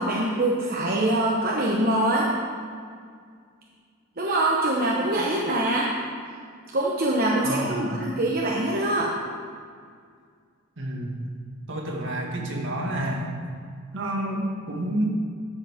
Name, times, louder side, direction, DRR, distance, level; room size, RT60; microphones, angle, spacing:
voice 1, 0.0-2.3 4.2-5.9 6.7-9.1, right 1 dB, 45° right, -3 dB, 0.9 m, -24 dB
voice 2, 7.4-8.1 10.8-11.2 11.7-13.3 13.9-15.1, right 1 dB, 65° right, 0 dB, 1.7 m, -29 dB
10.5 x 6.5 x 5.0 m, 2.1 s
head